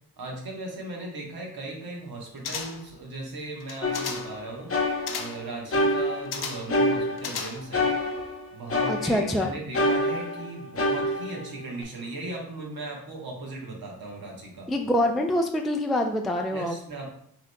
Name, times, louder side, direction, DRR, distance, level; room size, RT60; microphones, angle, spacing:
voice 1, 0.2-7.9 8.5-14.7 16.5-17.1, right 2 dB, 75° right, -1 dB, 1.1 m, -38 dB
sound 1, 2.4-3.0 3.6-4.4 5.1-5.5 6.3-6.8 7.2-7.9 8.2-8.3, left 6 dB, 80° left, 0.6 m, -35 dB
sound 2, 3.8-5.4 5.7-7.4 7.7-9.4 9.7-11.8, left 1 dB, 35° left, 0.8 m, -27 dB
voice 2, 8.8-9.5 14.7-16.7, left 1 dB, ahead, 3 dB, 0.3 m, -25 dB
5.7 x 2.9 x 2.2 m, 0.67 s
cardioid pair, 60°, 37 cm